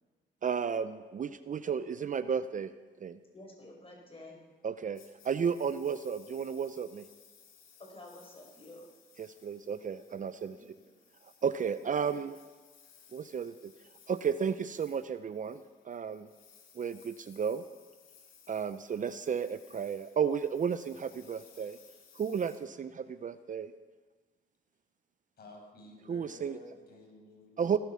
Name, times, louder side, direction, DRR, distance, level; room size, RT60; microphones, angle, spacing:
voice 1, 0.4-2.7 3.0-3.2 4.6-7.0 9.2-10.6 11.4-12.4 13.1-13.5 14.1-16.3 16.8-17.6 18.5-21.8 22.1-23.7 26.1-26.6 27.6-27.8, right 7 dB, 40° right, 12 dB, 0.6 m, -33 dB
voice 2, 3.3-4.4 7.8-8.9 10.5-10.6, left 2 dB, 30° left, 0 dB, 5.1 m, -50 dB
Engine, 4.9-23.4, left 6 dB, 80° left, 3.0 m, -61 dB
voice 3, 25.4-27.8, left 1 dB, 50° left, 1 dB, 5.9 m, -53 dB
17.0 x 13.0 x 5.7 m, 1.3 s
cardioid pair, 90°, 20 cm